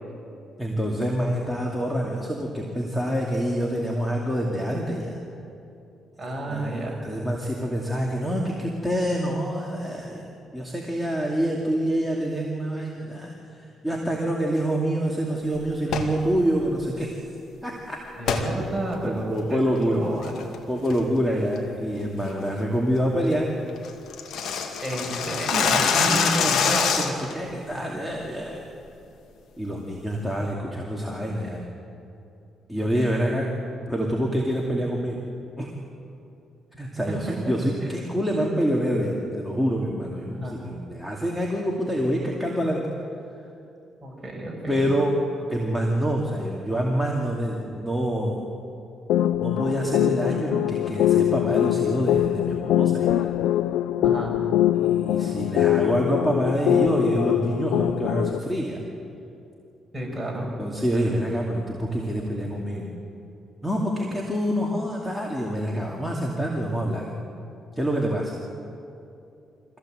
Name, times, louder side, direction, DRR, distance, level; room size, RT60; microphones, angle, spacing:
voice 1, 0.6-5.2 6.3-13.3 13.8-17.2 17.6-18.0 19.0-20.0 20.7-23.5 25.1-28.7 29.6-31.6 32.7-33.5 33.9-35.2 35.6-35.7 36.8-42.9 44.7-45.2 45.5-48.5 49.4-53.3 54.7-58.8 60.6-62.9 63.6-67.1 67.7-68.3, equal, ahead, -2 dB, 2.6 m, -26 dB
voice 2, 6.2-7.0 18.2-20.3 21.3-21.4 24.8-26.9 37.1-37.4 40.3-40.6 44.0-44.9 54.0-54.4 59.9-60.5, right 2 dB, 15° right, -2 dB, 6.5 m, -31 dB
sound 1, 15.8-16.2 18.3-18.5 18.9-19.0 19.6-19.8 20.2-20.6 20.9-21.2 21.5-21.6 22.0-22.3 22.6-22.7 23.0-23.1 23.3-23.4 23.7-27.3, left 6 dB, 75° left, 2.2 m, -24 dB
sound 2, 49.1-58.4, left 12 dB, 90° left, 0.4 m, -23 dB
24.5 x 16.5 x 7.9 m, 2.7 s
cardioid pair, 90°, 0 cm